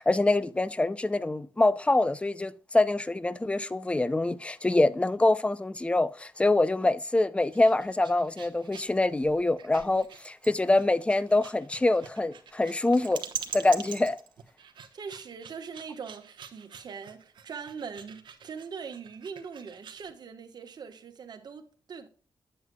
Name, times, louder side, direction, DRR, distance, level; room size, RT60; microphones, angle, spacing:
voice 1, 0.0-13.2 13.5-14.2, left 2 dB, 15° left, 0.5 m, -25 dB
sound 1, 7.4-20.1, right 7 dB, 80° right, 1.0 m, -44 dB
voice 2, 14.9-22.1, right 6 dB, 65° right, 1.2 m, -42 dB
9.3 x 7.6 x 2.3 m
wide cardioid pair, 105°, 8 cm